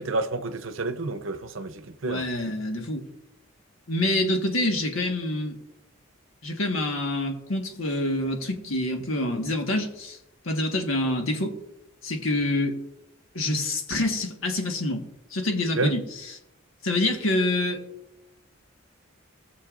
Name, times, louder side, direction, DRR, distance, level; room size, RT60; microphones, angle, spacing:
voice 1, 0.0-2.2 15.8-15.9, right 3 dB, 65° right, 0.7 m, -29 dB
voice 2, 2.0-3.0 3.9-5.6 6.4-10.2 10.4-11.5 12.0-12.7 13.3-15.0 15.3-16.4 16.8-17.8, left 1 dB, 75° left, 1.5 m, -26 dB
19.5 x 7.0 x 2.5 m
head